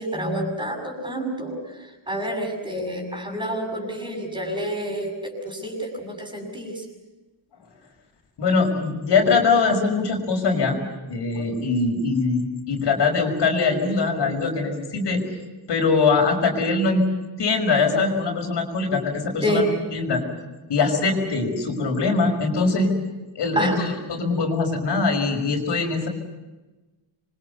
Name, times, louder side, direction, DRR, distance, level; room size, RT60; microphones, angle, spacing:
voice 1, 0.0-1.6 2.1-6.8 11.3-11.5 19.4-19.6 23.5-23.8, equal, 10° right, 2 dB, 6.5 m, -28 dB
voice 2, 8.4-10.8 11.1-15.2 15.7-17.0 17.4-20.2 20.7-22.9 23.3-26.1, left 4 dB, 65° left, 3 dB, 5.8 m, -22 dB
27.5 x 24.0 x 7.0 m, 1.1 s
wide cardioid pair, 150°, 45 cm